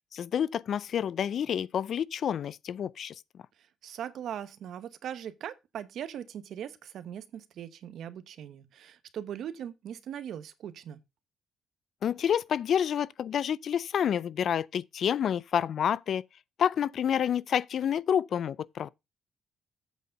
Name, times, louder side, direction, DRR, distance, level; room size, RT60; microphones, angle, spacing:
voice 1, 0.1-3.2 12.0-16.2 16.6-18.9, left 8 dB, 60° left, 0.4 m, -28 dB
voice 2, 3.8-11.0, right 9 dB, 70° right, 0.9 m, -40 dB
8.1 x 4.3 x 6.4 m
cardioid pair, 90°, 0 cm